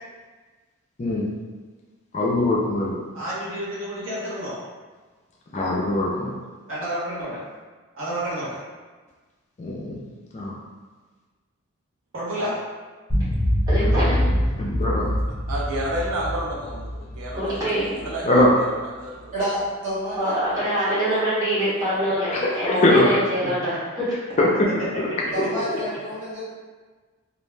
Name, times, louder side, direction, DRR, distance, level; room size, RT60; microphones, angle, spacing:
voice 1, 1.0-1.3 2.1-3.0 5.5-6.3 9.6-10.0 10.3-10.6 14.6-15.1 18.2-18.5 22.3-23.1 24.4-24.7, left 1 dB, 30° left, -3 dB, 0.3 m, -21 dB
voice 2, 3.1-4.6 6.7-7.4 7.9-8.6 12.1-12.5 23.4-23.5 25.1-25.3, equal, 60° right, -8 dB, 0.9 m, -30 dB
sound 1, 13.1-18.5, equal, 15° left, 0.9 m, -24 dB
voice 3, 13.7-14.5 17.4-18.1 20.2-24.2, equal, 15° right, -11 dB, 0.8 m, -24 dB
voice 4, 15.5-17.7 18.0-19.3 22.7-23.0, right 1 dB, 80° right, -3 dB, 0.4 m, -31 dB
voice 5, 19.8-20.9 21.3-21.7 25.3-26.4, equal, 35° right, -9 dB, 1.0 m, -30 dB
2.4 x 2.1 x 3.2 m, 1.4 s
head